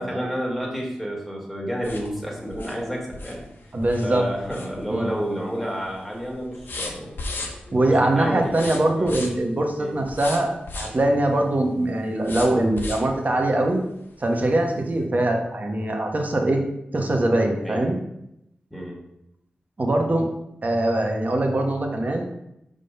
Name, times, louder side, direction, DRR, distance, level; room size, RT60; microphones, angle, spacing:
voice 1, 0.0-3.4 4.0-7.2 7.8-8.6 9.0-9.1 9.8-10.0 17.6-17.8 18.7-19.1, equal, ahead, -1 dB, 1.8 m, -30 dB
sound 1, 1.8-5.2 5.5-5.9 6.2-7.9 8.4-9.5 10.1-11.0 12.2-13.2 13.7-13.8 14.2-14.3, left 2 dB, 70° left, 1.0 m, -35 dB
voice 2, 3.7-4.3 4.9-5.1 7.7-13.8 14.2-16.6 16.9-18.0 19.8-20.3 20.6-22.2, right 1 dB, 45° right, 2 dB, 1.2 m, -22 dB
5.3 x 3.8 x 5.3 m, 0.81 s
cardioid pair, 55°, 4 cm